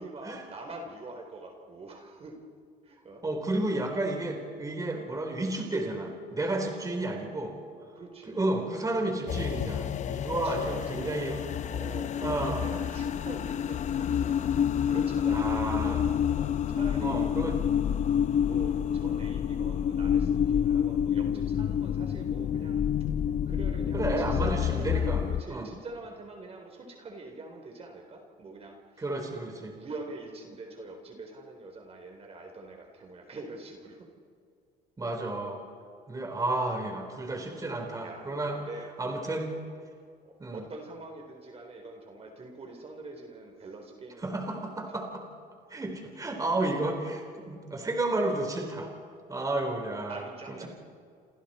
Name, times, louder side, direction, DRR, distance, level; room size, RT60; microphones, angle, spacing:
voice 1, 0.0-2.4 2.8-3.2 6.5-7.0 7.9-8.6 10.2-17.3 18.4-22.9 23.5-29.4 29.7-34.1 38.0-39.1 40.2-44.4 49.4-49.5 50.1-50.7, right 2 dB, 35° right, 3 dB, 3.9 m, -44 dB
voice 2, 3.2-7.6 8.3-11.4 12.2-12.7 15.3-16.1 17.0-17.6 23.9-25.2 25.5-25.7 29.0-29.8 35.0-35.6 36.1-38.6 39.0-39.6 40.4-40.6 44.2-45.2 45.7-48.9 49.3-50.7, right 2 dB, 20° right, 3 dB, 4.0 m, -32 dB
sound 1, 9.3-25.4, left 8 dB, 45° left, 0.6 m, -28 dB
29.0 x 27.5 x 4.4 m, 2.2 s
cardioid pair, 110°, 17 cm